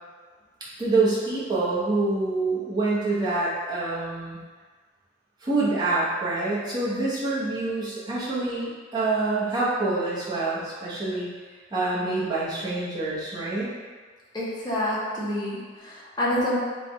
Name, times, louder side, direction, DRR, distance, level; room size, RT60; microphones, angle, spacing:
voice 1, 0.8-4.4 5.4-11.3 11.7-13.7, right 2 dB, 20° right, -9 dB, 0.8 m, -26 dB
voice 2, 14.3-16.6, left 1 dB, 20° left, -7 dB, 0.7 m, -27 dB
3.2 x 2.2 x 3.9 m, 1.5 s
head